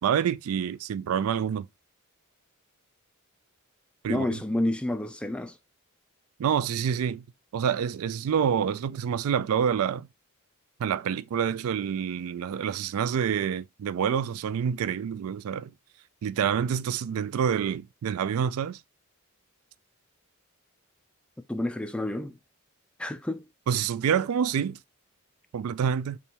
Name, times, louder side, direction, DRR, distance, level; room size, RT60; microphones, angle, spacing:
voice 1, 0.0-1.7 4.0-4.4 6.4-7.2 7.5-10.1 10.8-15.7 16.2-18.8 23.7-24.8 25.5-26.2, right 8 dB, 75° right, 0.3 m, -27 dB
voice 2, 4.1-5.5 21.5-22.4 23.0-23.4, left 1 dB, 5° left, 0.3 m, -29 dB
5.3 x 2.2 x 3.2 m
head